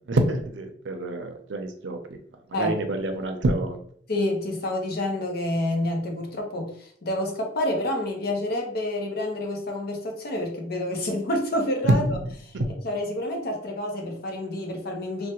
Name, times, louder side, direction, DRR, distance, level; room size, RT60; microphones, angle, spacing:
voice 1, 0.1-2.2 2.6-3.8 11.8-12.2 12.5-12.7, right 1 dB, 80° right, 6 dB, 0.5 m, -26 dB
voice 2, 4.1-15.3, left 1 dB, 55° left, 2 dB, 0.7 m, -28 dB
3.2 x 2.1 x 2.9 m, 0.62 s
head